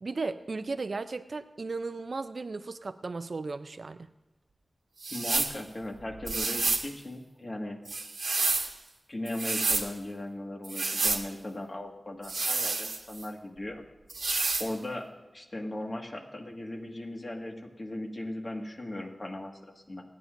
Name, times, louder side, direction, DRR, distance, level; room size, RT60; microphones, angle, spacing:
voice 1, 0.0-4.1, right 3 dB, 65° right, 11 dB, 0.5 m, -35 dB
sound 1, 5.0-5.6 6.3-6.9 7.9-8.7 9.3-9.9 10.6-11.2 12.2-13.3 14.1-14.7, right 3 dB, 85° right, 1.3 m, -29 dB
voice 2, 5.1-7.8 9.1-13.8 14.6-15.1 15.3-20.0, left 1 dB, 45° left, 1 dB, 1.9 m, -38 dB
27.5 x 9.5 x 2.6 m, 1.1 s
wide cardioid pair, 65°, 0 cm